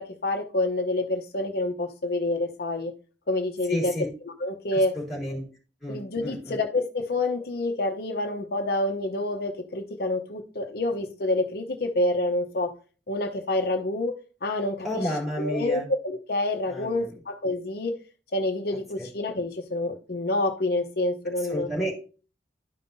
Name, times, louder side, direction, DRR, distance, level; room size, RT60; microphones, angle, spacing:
voice 1, 0.0-2.9 3.3-3.9 4.4-4.9 5.9-12.7 13.1-14.1 14.4-15.1 15.4-17.9 18.3-21.7, left 2 dB, 60° left, 3 dB, 0.8 m, -27 dB
voice 2, 3.7-4.1 4.9-5.4 5.8-6.6 14.8-15.8 16.7-17.1 19.0-19.1 21.5-21.9, equal, ahead, -4 dB, 3.6 m, -31 dB
12.0 x 5.4 x 2.7 m, 0.36 s
head